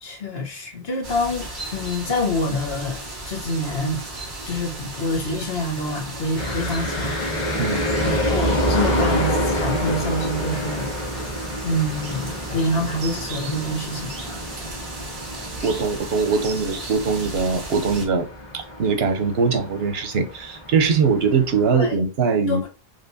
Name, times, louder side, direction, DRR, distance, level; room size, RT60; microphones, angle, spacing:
voice 1, 0.0-4.0 4.4-7.5 8.0-10.9 11.6-14.1 21.7-21.9 22.5-22.7, left 1 dB, 75° left, 1.4 m, -27 dB
sound 1, 1.0-18.1, right 2 dB, 55° right, 1.9 m, -35 dB
sound 2, 6.4-21.8, equal, 45° left, 1.5 m, -28 dB
voice 2, 15.6-18.3 18.5-22.7, right 5 dB, 80° right, 1.0 m, -21 dB
4.3 x 3.1 x 2.7 m
omnidirectional pair, 1.0 m